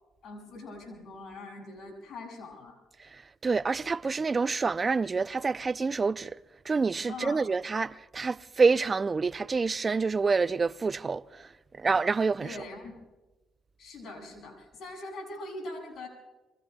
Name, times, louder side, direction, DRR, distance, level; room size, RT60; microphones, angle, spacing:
voice 1, 0.2-2.8 7.1-7.4 12.4-13.0 13.8-16.1, left 2 dB, 65° left, 6.8 m, -42 dB
voice 2, 3.4-6.3 6.7-11.5 11.8-12.6, right 4 dB, 35° right, 0.4 m, -27 dB
26.5 x 24.0 x 2.3 m
supercardioid pair, 75°, 0 cm